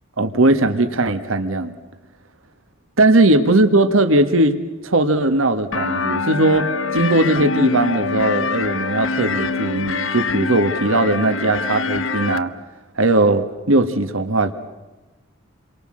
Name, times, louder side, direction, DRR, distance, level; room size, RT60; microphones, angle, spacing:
voice 1, 0.2-1.7 3.0-4.6 4.8-12.5 13.0-14.5, right 2 dB, 80° right, 8 dB, 1.6 m, -18 dB
sound 1, 5.7-12.4, left 4 dB, 75° left, 1.1 m, -24 dB
29.0 x 23.5 x 7.7 m, 1.1 s
head